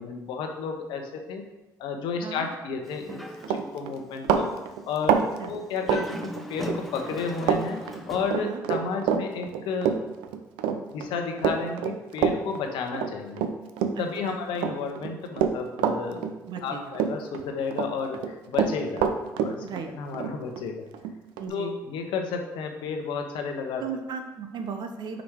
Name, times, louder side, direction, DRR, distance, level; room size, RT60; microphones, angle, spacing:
voice 1, 0.0-1.5 1.8-4.5 4.9-7.8 8.1-10.0 10.7-13.4 14.0-16.3 16.6-19.1 19.4-19.6 19.9-20.8 21.5-23.8, left 5 dB, 75° left, 4 dB, 0.9 m, -32 dB
Dog, 2.8-4.0 4.4-4.5 5.7-8.4, equal, ahead, 0.8 m, -38 dB
Run, 3.0-3.1 3.4-6.8 7.1-7.6 7.9-14.2 14.5-16.7 16.9-17.9 18.1-21.5, right 7 dB, 80° right, 0.5 m, -26 dB
voice 2, 5.1-5.5 8.4-8.6 13.9-14.4 16.5-16.9 19.6-19.9 21.4-21.8 23.8-25.2, right 6 dB, 60° right, 6 dB, 0.9 m, -36 dB
5.1 x 5.0 x 4.7 m, 1.0 s
hypercardioid pair, 60°, 8 cm